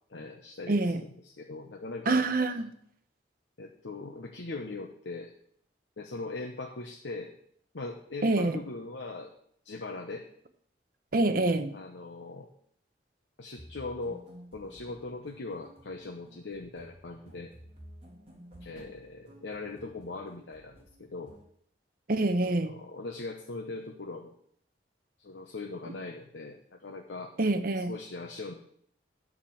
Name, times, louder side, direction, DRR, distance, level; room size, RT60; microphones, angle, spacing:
voice 1, 0.1-2.3 3.6-5.3 6.0-7.3 7.7-9.3 9.6-10.3 11.7-12.5 13.4-14.2 14.5-17.5 18.6-21.3 22.4-24.3 25.2-27.3 27.8-28.6, left 3 dB, 90° left, 1.0 m, -40 dB
voice 2, 0.7-1.0 2.1-2.7 8.2-8.6 11.1-11.7 22.1-22.7 27.4-28.0, right 2 dB, 55° right, 0.8 m, -26 dB
sound 1, 13.6-21.4, equal, 35° right, 2.4 m, -53 dB
9.4 x 4.9 x 7.1 m
head